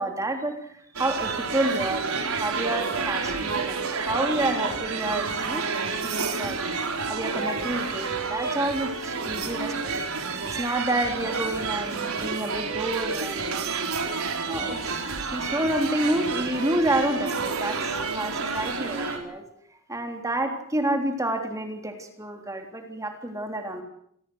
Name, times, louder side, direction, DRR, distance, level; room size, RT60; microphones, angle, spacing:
voice 1, 0.0-5.7 6.0-6.6 7.1-9.9 10.4-13.7 14.5-15.0 15.3-19.4 19.7-23.8, right 1 dB, 15° right, 4 dB, 3.5 m, -29 dB
sound 1, 0.9-19.2, right 4 dB, 75° right, 4.7 m, -29 dB
28.0 x 19.5 x 8.0 m, 0.69 s
head